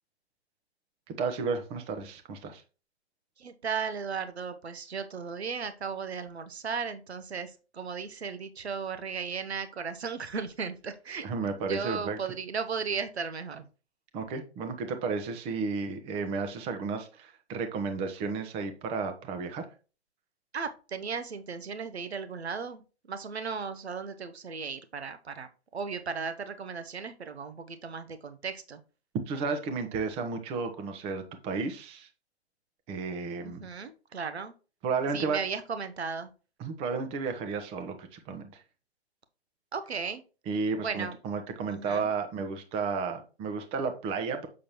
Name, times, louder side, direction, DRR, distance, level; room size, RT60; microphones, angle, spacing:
voice 1, 1.1-2.6 11.2-12.2 14.1-19.6 29.3-32.1 32.9-33.7 34.8-35.4 36.6-38.6 40.5-44.5, right 4 dB, 15° right, 7 dB, 0.9 m, -33 dB
voice 2, 3.4-11.3 11.7-13.6 20.5-22.8 23.1-28.8 33.4-34.5 35.1-36.3 39.7-40.2 40.8-41.1 41.7-42.1, right 5 dB, 70° right, 10 dB, 1.0 m, -36 dB
7.5 x 6.2 x 3.0 m, 0.34 s
figure-of-eight pair, 125°, 33 cm